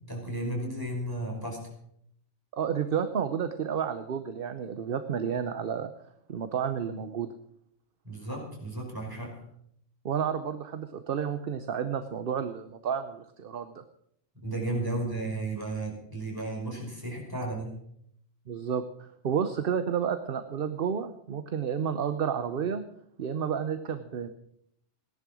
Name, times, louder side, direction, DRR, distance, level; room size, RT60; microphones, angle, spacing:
voice 1, 0.1-1.7 8.0-9.4 14.3-17.7, right 2 dB, 15° right, -2 dB, 5.5 m, -34 dB
voice 2, 2.5-5.9 6.3-7.3 10.0-13.8 18.5-22.8 23.2-24.3, right 7 dB, 55° right, 10 dB, 0.9 m, -31 dB
17.0 x 11.0 x 6.2 m, 0.72 s
omnidirectional pair, 1.2 m